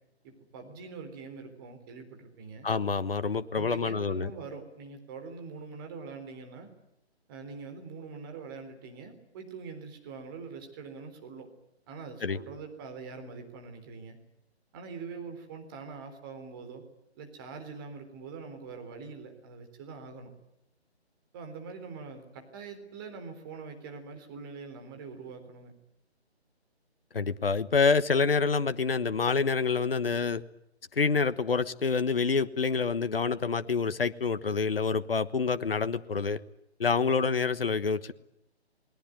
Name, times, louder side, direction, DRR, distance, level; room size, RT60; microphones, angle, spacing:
voice 1, 0.2-2.7 3.5-6.7 7.3-11.5 11.9-14.2 14.7-16.8 17.2-20.3 21.3-25.7, right 5 dB, 20° right, 5 dB, 3.8 m, -43 dB
voice 2, 2.6-4.3 12.2-12.4 27.1-30.4 30.9-36.4 36.8-38.1, left 4 dB, 60° left, 12 dB, 1.3 m, -27 dB
28.0 x 21.0 x 9.3 m, 0.83 s
figure-of-eight pair, 145°, 33 cm